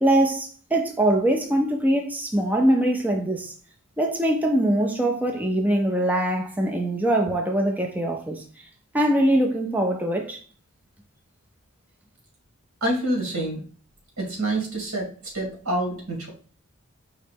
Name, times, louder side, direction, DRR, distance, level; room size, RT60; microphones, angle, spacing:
voice 1, 0.0-3.5 4.0-8.4 8.9-10.4, right 1 dB, 10° right, 0.5 m, -22 dB
voice 2, 12.8-13.6 14.2-16.3, right 1 dB, 75° right, 2.2 m, -27 dB
4.8 x 3.2 x 3.4 m
head